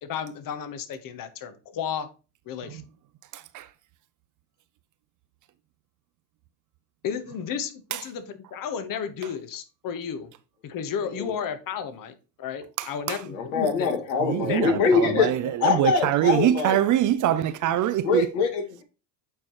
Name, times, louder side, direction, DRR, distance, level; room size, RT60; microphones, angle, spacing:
voice 1, 0.0-2.1 2.5-2.8 7.0-10.3 10.6-13.9 14.5-15.5, left 7 dB, 45° left, 1.1 m, -33 dB
voice 2, 12.8-13.2 14.2-18.3, right 12 dB, 40° right, 0.5 m, -24 dB
voice 3, 13.3-15.3 15.6-16.8 18.0-18.8, left 5 dB, 80° left, 2.1 m, -24 dB
8.6 x 4.6 x 3.0 m
supercardioid pair, 100°, 48 cm